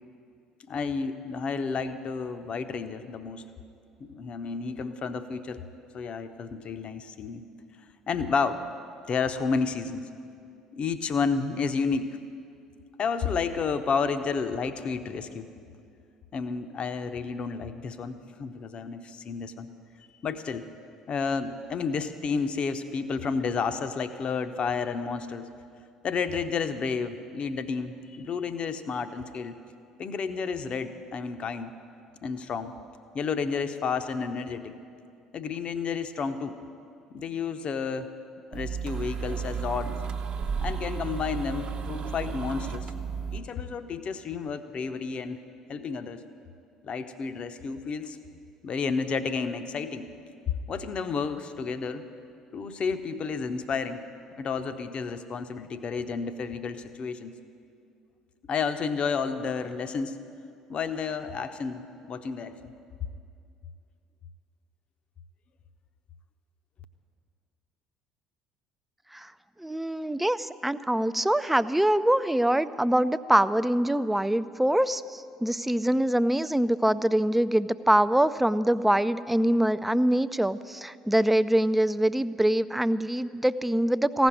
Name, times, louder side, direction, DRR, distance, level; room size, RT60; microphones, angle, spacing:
voice 1, 0.7-3.4 4.0-5.6 5.9-7.4 8.1-8.6 9.1-10.0 10.7-12.1 13.0-15.5 16.3-19.7 20.2-20.6 21.1-25.5 26.0-29.6 30.0-31.7 32.2-32.7 33.1-34.7 35.3-36.6 37.1-38.1 38.5-39.9 40.6-42.9 43.3-45.4 45.7-46.2 46.8-48.2 48.6-50.1 50.7-52.0 52.5-54.0 54.4-57.3 58.5-60.2 60.7-62.7, left 5 dB, 40° left, 10 dB, 0.7 m, -31 dB
sound 1, 38.5-43.4, right 6 dB, 40° right, 0.9 m, -33 dB
voice 2, 69.6-84.3, right 1 dB, 5° right, 14 dB, 0.3 m, -24 dB
15.5 x 6.1 x 9.9 m, 2.5 s
figure-of-eight pair, 55°, 3 cm